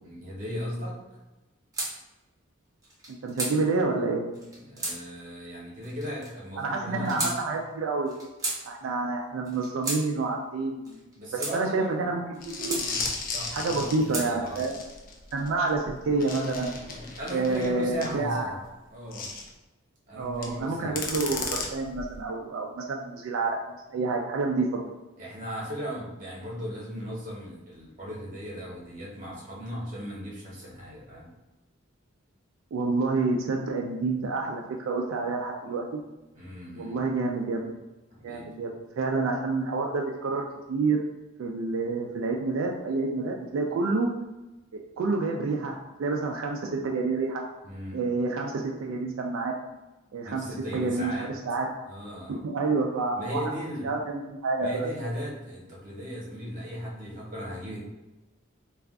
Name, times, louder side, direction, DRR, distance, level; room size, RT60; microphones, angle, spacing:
voice 1, 0.0-1.0 4.5-7.4 11.2-12.1 12.6-14.7 16.9-18.6 18.9-19.3 20.1-21.0 25.2-31.3 36.3-37.0 38.1-38.5 47.6-48.0 50.2-51.3 51.9-52.4 53.1-53.9 54.6-57.8, equal, 40° right, -4 dB, 0.9 m, -37 dB
sound 1, 1.7-1.9 2.8-3.5 4.3-5.0 5.8-6.3 7.0-7.4 8.1-8.6 9.4-10.0 10.8-11.6 12.3-12.8 13.6-14.3, right 2 dB, 20° right, 0.6 m, -33 dB
voice 2, 3.1-4.2 6.6-8.1 8.6-11.1 11.5-12.9 13.5-14.7 15.3-16.8 17.3-18.6 20.2-24.7 32.7-36.0 36.7-37.8 38.2-41.0 41.4-44.1 44.7-47.4 47.9-49.5 50.1-50.4 50.7-51.7 52.3-53.4 53.8-54.9, right 3 dB, 85° right, 0 dB, 0.3 m, -28 dB
sound 2, 12.4-18.1 19.1-19.5 20.3-20.6 21.0-22.2, left 4 dB, 45° left, 0.4 m, -35 dB
2.4 x 2.2 x 3.5 m, 1.1 s
head